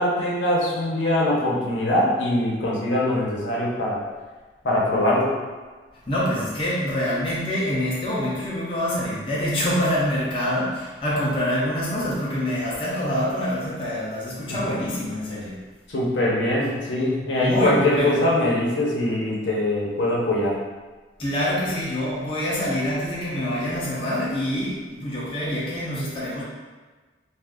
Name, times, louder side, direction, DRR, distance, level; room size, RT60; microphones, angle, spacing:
voice 1, 0.0-4.0 4.6-5.3 14.5-14.6 15.9-20.6, left 1 dB, 80° left, -4 dB, 0.7 m, -22 dB
voice 2, 6.1-15.5 17.3-18.2 21.2-26.4, equal, 30° left, -7 dB, 0.5 m, -26 dB
2.5 x 2.4 x 3.5 m, 1.3 s
head